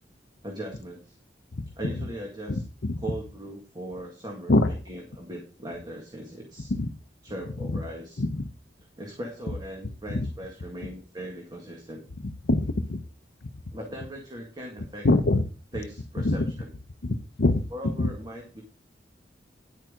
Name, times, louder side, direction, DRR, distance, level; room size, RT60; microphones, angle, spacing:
voice 1, 0.4-1.2 1.8-2.6 3.0-6.7 7.2-8.2 9.0-12.0 13.7-15.1 15.7-16.7 17.7-18.6, right 1 dB, 25° right, 1 dB, 1.9 m, -39 dB
voice 2, 2.5-3.0 4.5-4.7 6.7-6.9 8.2-8.5 10.1-10.3 12.5-13.0 15.0-15.5 16.2-16.5 17.0-17.6 18.0-18.1, left 2 dB, 70° left, 11 dB, 0.8 m, -24 dB
10.0 x 9.0 x 3.7 m, 0.35 s
head